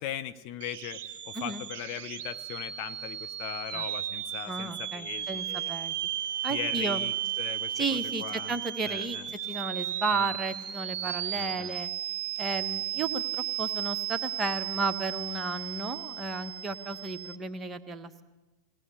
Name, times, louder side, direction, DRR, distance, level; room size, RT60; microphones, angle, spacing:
voice 1, 0.0-5.8 6.5-8.6 8.8-9.3 10.1-10.3 11.3-11.7, left 11 dB, 45° left, 10 dB, 0.9 m, -39 dB
sound 1, 0.6-17.4, right 11 dB, 50° right, 1.3 m, -35 dB
voice 2, 4.5-5.9 6.4-7.0 7.7-9.2 9.5-11.9 12.4-18.2, right 3 dB, 15° right, 7 dB, 1.5 m, -33 dB
22.0 x 18.5 x 8.3 m, 1.2 s
figure-of-eight pair, 90°, 0 cm